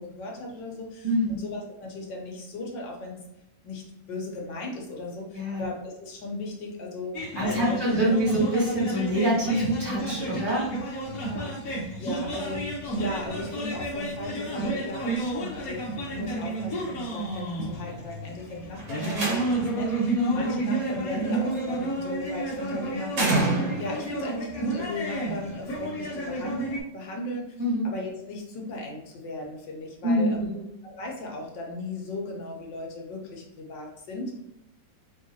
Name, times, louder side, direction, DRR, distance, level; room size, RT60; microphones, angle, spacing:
voice 1, 0.0-3.1 3.6-7.1 7.4-7.8 8.1-8.2 12.0-23.2 23.8-30.5 30.8-34.4, left 2 dB, 80° left, 0 dB, 1.7 m, -37 dB
voice 2, 1.0-1.4 5.3-5.6 7.3-10.7 11.3-11.5 16.1-16.3 20.1-20.5 27.6-27.9 30.0-30.7, equal, 15° right, -6 dB, 1.3 m, -26 dB
sound 1, 7.1-26.8, right 2 dB, 55° left, 1.3 m, -31 dB
Slam, 18.8-19.8 21.3-21.8 23.1-24.1, right 2 dB, 75° right, 2.0 m, -28 dB
4.1 x 3.8 x 2.8 m, 0.87 s
omnidirectional pair, 1.9 m